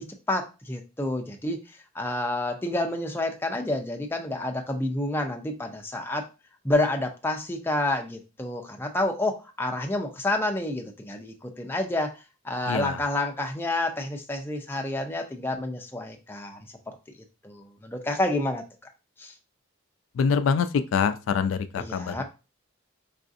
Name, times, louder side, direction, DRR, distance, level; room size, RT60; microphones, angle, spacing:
voice 1, 0.0-1.6 1.9-6.2 6.6-12.1 12.4-17.0 17.4-18.6 19.2-19.3 21.7-22.2, left 1 dB, 10° left, 3 dB, 0.4 m, -29 dB
voice 2, 12.7-13.0 20.2-22.2, left 6 dB, 75° left, 11 dB, 0.3 m, -25 dB
4.7 x 2.5 x 2.5 m, 0.30 s
head